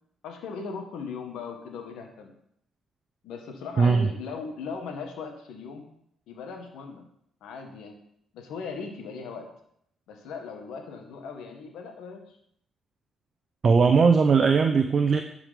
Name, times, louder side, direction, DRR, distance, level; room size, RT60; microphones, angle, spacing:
voice 1, 0.2-2.3 3.2-5.9 6.3-7.0 7.4-8.0 8.3-9.5 10.1-12.4, left 5 dB, 85° left, 3 dB, 1.7 m, -38 dB
voice 2, 3.8-4.1 13.6-15.2, right 5 dB, 45° right, 5 dB, 0.7 m, -19 dB
11.0 x 4.9 x 5.3 m, 0.70 s
cardioid pair, 90°, 0 cm